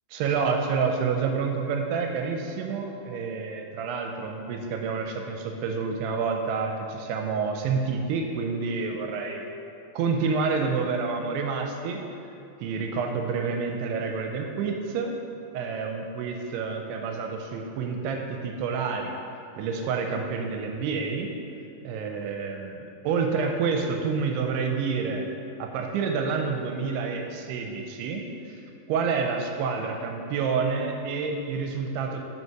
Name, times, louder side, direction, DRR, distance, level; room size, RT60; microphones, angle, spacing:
voice 1, 0.1-9.5 10.0-12.1 12.6-15.2 15.5-19.2 19.6-21.3 21.8-25.3 25.6-28.6 28.9-32.2, right 5 dB, 85° right, 3 dB, 2.5 m, -28 dB
5.6 x 5.5 x 4.5 m, 2.7 s
omnidirectional pair, 4.8 m